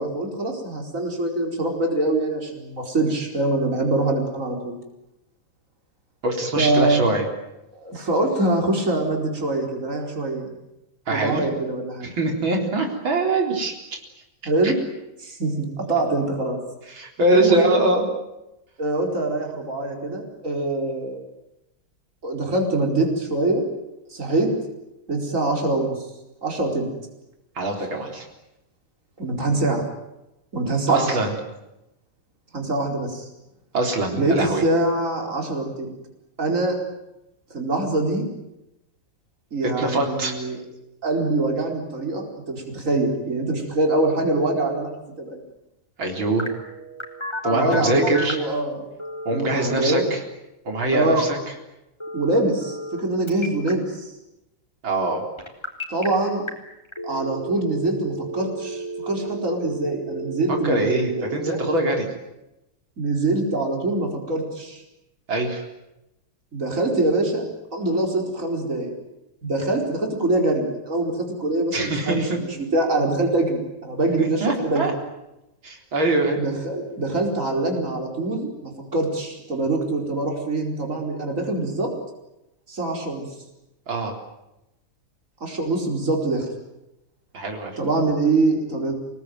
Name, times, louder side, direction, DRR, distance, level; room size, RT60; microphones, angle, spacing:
voice 1, 0.0-4.8 6.6-7.2 7.7-10.5 11.1-12.1 14.4-14.8 15.2-16.6 17.3-17.8 18.8-21.2 22.2-23.7 24.1-24.5 25.1-26.0 26.4-26.9 29.2-29.8 30.5-31.2 32.5-33.3 34.1-35.9 36.4-36.8 37.5-38.3 39.5-40.6 41.0-44.9 45.2-45.4 47.5-48.9 49.3-50.1 50.9-51.3 52.1-54.1 55.9-56.5 57.0-61.6 63.0-64.8 66.5-68.9 69.4-72.3 72.6-74.8 76.4-81.9 82.7-83.2 85.4-86.5 87.8-88.9, right 2 dB, 40° right, 1 dB, 5.0 m, -24 dB
voice 2, 6.2-7.3 11.1-11.4 12.0-13.8 14.6-14.7 16.9-18.1 27.6-28.2 30.9-31.3 33.7-34.6 39.6-40.3 46.0-46.4 47.4-48.4 49.2-50.2 50.6-51.4 54.8-55.2 60.5-62.1 65.3-65.6 71.7-72.4 74.2-74.9 75.6-76.4 83.9-84.2 87.3-87.8, right 2 dB, 85° right, 2 dB, 4.7 m, -23 dB
Telephone, 46.4-48.5 49.0-50.0 52.0-53.0 53.3-53.7 55.4-56.1 56.5-56.6 56.9-62.0, right 1 dB, 15° left, 4.0 m, -32 dB
28.5 x 19.5 x 9.4 m, 0.92 s
omnidirectional pair, 2.1 m